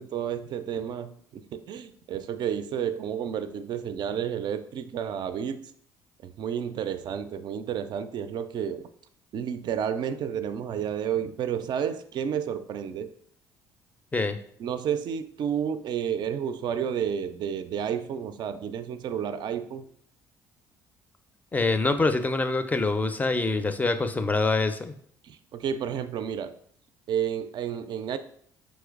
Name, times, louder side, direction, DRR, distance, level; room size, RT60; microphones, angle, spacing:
voice 1, 0.0-5.6 6.2-8.9 9.3-13.1 14.6-19.9 25.2-26.6 27.1-28.2, right 8 dB, 45° right, 11 dB, 0.4 m, -31 dB
voice 2, 21.5-25.0, left 3 dB, 15° left, 9 dB, 0.4 m, -25 dB
5.3 x 3.0 x 2.4 m, 0.62 s
figure-of-eight pair, 50°, 10 cm